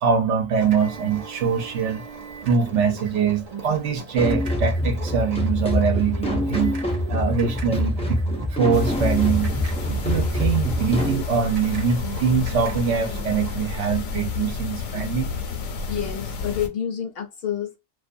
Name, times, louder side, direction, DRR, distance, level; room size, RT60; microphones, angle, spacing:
voice 1, 0.0-2.0 2.4-6.8 7.1-8.2 8.5-9.5 9.9-15.3, right 6 dB, 75° right, 0.9 m, -23 dB
sound 1, 0.6-13.7, right 4 dB, 55° right, 0.4 m, -39 dB
sound 2, 4.2-11.2, left 1 dB, 10° left, 0.3 m, -25 dB
sound 3, 8.7-16.7, left 5 dB, 80° left, 1.0 m, -31 dB
voice 2, 15.9-17.8, left 9 dB, 60° left, 0.7 m, -28 dB
2.4 x 2.2 x 2.5 m
omnidirectional pair, 1.3 m